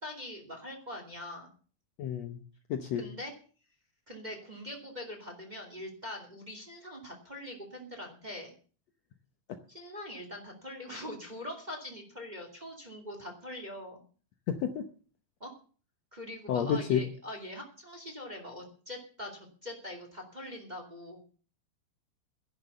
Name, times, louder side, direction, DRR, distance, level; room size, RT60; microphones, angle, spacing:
voice 1, 0.0-1.5 2.9-3.3 4.1-8.5 9.7-14.0 15.4-15.5 16.1-21.2, left 1 dB, 15° right, 2 dB, 2.1 m, -43 dB
voice 2, 2.0-2.4 2.7-3.0 14.5-14.8 16.5-17.0, left 8 dB, 90° left, 6 dB, 1.5 m, -30 dB
12.5 x 11.0 x 6.8 m, 0.41 s
omnidirectional pair, 4.5 m